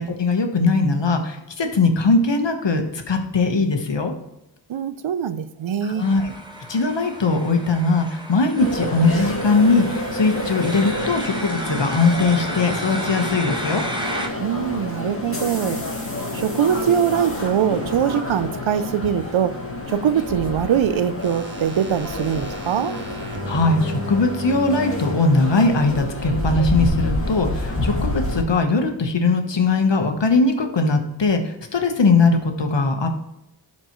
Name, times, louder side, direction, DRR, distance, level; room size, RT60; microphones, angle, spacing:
voice 1, 0.0-4.1 5.8-6.3 6.7-13.8 23.5-33.1, left 3 dB, 70° left, 5 dB, 1.3 m, -20 dB
voice 2, 4.7-6.1 14.4-15.8 16.3-19.6 19.9-23.0, right 8 dB, 90° right, 13 dB, 0.6 m, -22 dB
sound 1, 6.0-14.3, right 1 dB, 10° right, 1.4 m, -33 dB
sound 2, 8.6-28.4, left 1 dB, 30° left, 2.2 m, -29 dB
sound 3, 21.2-25.1 25.8-25.9, equal, 25° right, 1.2 m, -34 dB
12.0 x 4.4 x 3.1 m, 0.89 s
cardioid pair, 40°, 45 cm